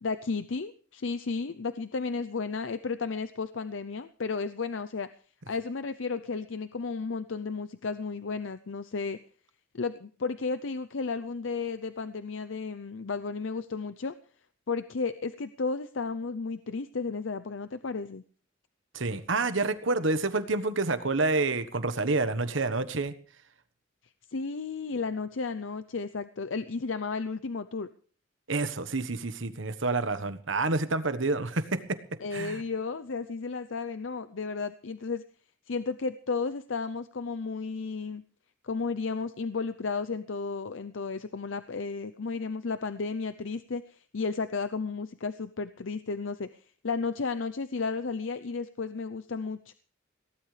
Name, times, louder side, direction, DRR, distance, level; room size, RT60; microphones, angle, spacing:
voice 1, 0.0-5.1 5.5-9.2 9.7-14.1 14.7-18.2 24.3-27.9 32.2-35.2 35.7-38.2 38.6-49.7, left 4 dB, 75° left, 11 dB, 0.6 m, -33 dB
voice 2, 18.9-23.1 28.5-32.0 32.3-32.6, right 3 dB, 75° right, 11 dB, 1.3 m, -28 dB
22.0 x 17.0 x 3.3 m, 0.42 s
head